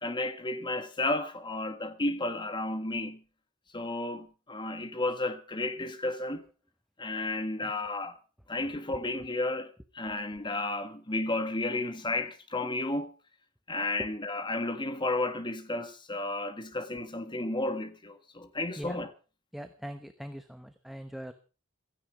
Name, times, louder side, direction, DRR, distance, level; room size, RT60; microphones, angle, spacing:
voice 1, 0.0-3.2 3.7-6.4 7.0-8.2 8.5-13.1 13.7-19.1, left 2 dB, 20° left, 1.5 m, -32 dB
voice 2, 19.5-21.3, equal, ahead, 0.9 m, -42 dB
16.0 x 13.5 x 5.0 m
head